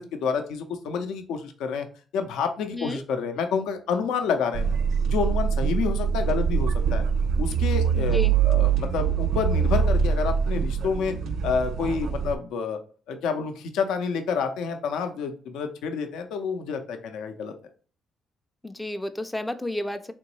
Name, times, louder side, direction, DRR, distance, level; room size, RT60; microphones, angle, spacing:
voice 1, 0.0-1.9 2.1-4.8 5.1-7.0 7.4-8.2 8.4-11.1 11.4-12.8 13.1-17.5, left 5 dB, 85° left, 6 dB, 0.5 m, -28 dB
sound 1, 4.5-12.4, right 7 dB, 70° right, 0.3 m, -24 dB
voice 2, 8.0-8.3 18.6-20.1, left 1 dB, 10° left, 8 dB, 0.3 m, -31 dB
3.6 x 3.0 x 3.0 m, 0.41 s
cardioid pair, 90°, 0 cm